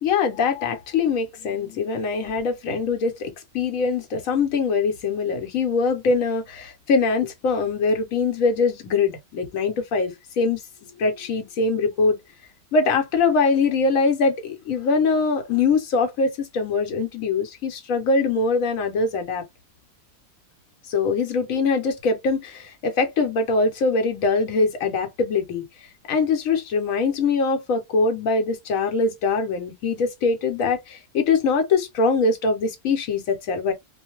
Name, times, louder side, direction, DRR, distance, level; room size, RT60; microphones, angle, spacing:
voice 1, 0.0-12.2 12.7-19.4 20.9-25.7 26.1-33.7, left 4 dB, 75° left, 1.1 m, -23 dB
2.5 x 2.1 x 2.8 m
omnidirectional pair, 1.5 m